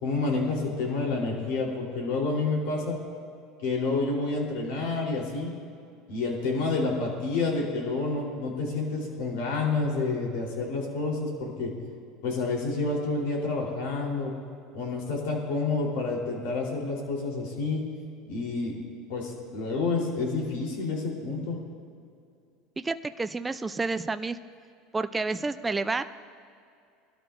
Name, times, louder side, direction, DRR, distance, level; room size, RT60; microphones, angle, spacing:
voice 1, 0.0-3.0 3.6-5.5 6.1-11.7 12.2-14.3 14.7-17.8 18.3-18.7 19.1-21.6, left 3 dB, 75° left, -1 dB, 3.7 m, -29 dB
voice 2, 22.8-24.4 24.9-26.1, right 3 dB, 15° right, 10 dB, 0.5 m, -29 dB
22.0 x 12.5 x 2.6 m, 2.4 s
supercardioid pair, 110°, 0 cm